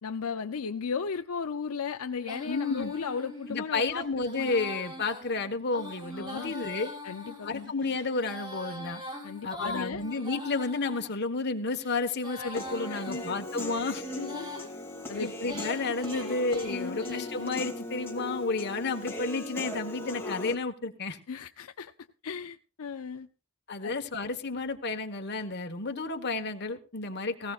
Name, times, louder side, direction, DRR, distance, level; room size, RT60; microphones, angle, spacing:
voice 1, 0.0-4.1 4.4-4.5 6.1-6.5 7.0-7.7 9.2-10.0 12.4-12.5 12.9-13.4 14.1-14.7 15.1-15.3 16.2-16.4 16.7-17.3 21.3-21.9 22.2-23.3 23.8-23.9, left 5 dB, 80° left, 0.6 m, -36 dB
Female singing, 2.2-11.1 11.7-14.7 15.2-17.5, left 1 dB, 20° right, 6.3 m, -42 dB
voice 2, 2.4-2.9 3.5-6.9 7.4-9.0 9.4-14.0 15.2-21.2 23.7-27.5, left 3 dB, 50° left, 1.3 m, -31 dB
Human voice / Piano, 12.5-20.5, left 1 dB, 10° left, 2.4 m, -38 dB
18.5 x 17.0 x 2.4 m
head